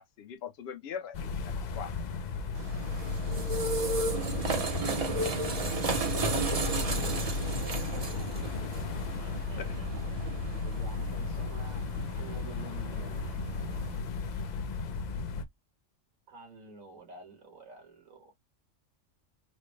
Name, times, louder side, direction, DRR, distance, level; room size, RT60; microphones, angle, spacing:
voice 1, 0.0-1.9 6.1-6.6 9.6-9.8, left 7 dB, 55° left, 0.9 m, -42 dB
sound 1, 1.1-15.4, left 4 dB, 85° left, 0.3 m, -35 dB
sound 2, 2.6-14.0, right 3 dB, 40° right, 0.6 m, -34 dB
voice 2, 6.6-8.5 9.2-9.9 10.6-11.8 12.1-13.2 16.3-18.3, right 4 dB, 80° right, 1.8 m, -49 dB
4.1 x 2.1 x 3.1 m
omnidirectional pair, 1.4 m